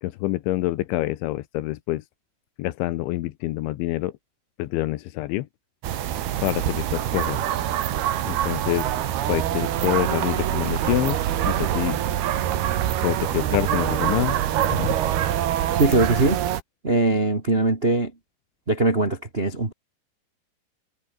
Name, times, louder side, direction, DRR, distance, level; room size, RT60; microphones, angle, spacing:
voice 1, 0.0-2.0 2.6-4.1 4.6-5.5 6.4-7.4 8.2-8.9 9.3-11.2 11.5-12.0 13.0-14.4 14.7-15.0, left 16 dB, 85° left, 3.4 m, -26 dB
sound 1, 5.8-16.6, right 11 dB, 65° right, 3.4 m, -25 dB
voice 2, 15.8-16.4 16.8-18.1 18.7-19.7, right 2 dB, 40° right, 0.8 m, -21 dB
omnidirectional pair, 5.4 m